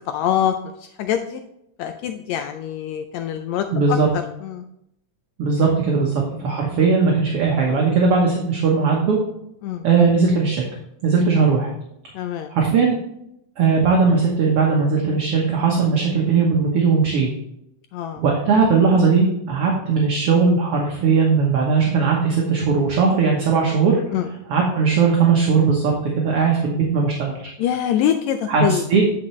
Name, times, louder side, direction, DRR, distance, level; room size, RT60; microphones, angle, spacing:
voice 1, 0.1-0.5 1.0-1.4 1.8-4.6 6.0-6.1 9.6-9.8 12.1-12.5 17.9-18.2 24.1-24.3 27.6-28.8, left 10 dB, 80° left, 7 dB, 1.7 m, -24 dB
voice 2, 3.7-4.1 5.4-9.2 9.8-10.6 11.0-11.7 12.5-13.0 13.6-17.3 18.2-24.0 24.5-27.5 28.5-29.0, right 5 dB, 60° right, -1 dB, 1.9 m, -18 dB
9.6 x 5.7 x 3.1 m, 0.78 s
omnidirectional pair, 3.4 m